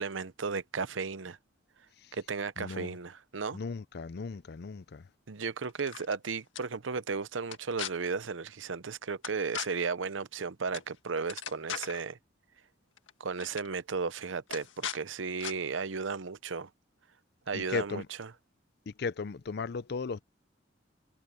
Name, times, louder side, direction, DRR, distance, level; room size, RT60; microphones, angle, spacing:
voice 1, 0.0-1.4 2.1-3.6 5.3-12.2 13.2-16.7 17.5-18.0, right 5 dB, 85° right, 0.8 m, -34 dB
voice 2, 2.6-2.9 3.5-5.1 17.5-18.1 18.9-20.2, left 4 dB, 55° left, 0.5 m, -36 dB
sound 1, 5.7-6.2 6.5-6.6 7.4-7.9 9.2-9.7 10.7-10.9 11.2-12.0 13.0-13.1 13.4-13.7 14.5-15.0 15.4-15.5, left 8 dB, 80° left, 1.7 m, -38 dB
head